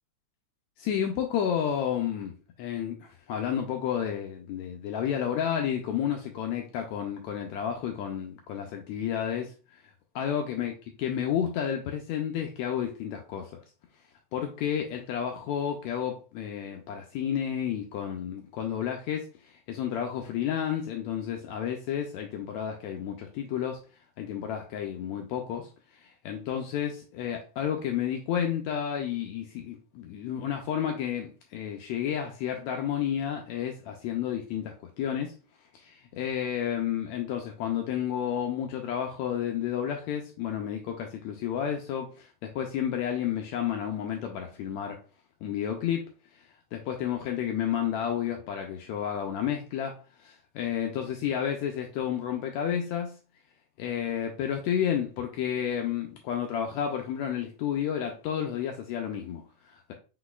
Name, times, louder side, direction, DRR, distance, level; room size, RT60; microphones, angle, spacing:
voice 1, 0.8-9.5 10.1-10.7 11.0-13.6 14.3-23.8 24.2-35.4 35.7-45.0 45.4-46.1 46.3-46.4 46.7-53.2 53.8-59.9, left 9 dB, 80° left, 1.7 m, -31 dB
5.5 x 4.1 x 2.3 m
omnidirectional pair, 3.6 m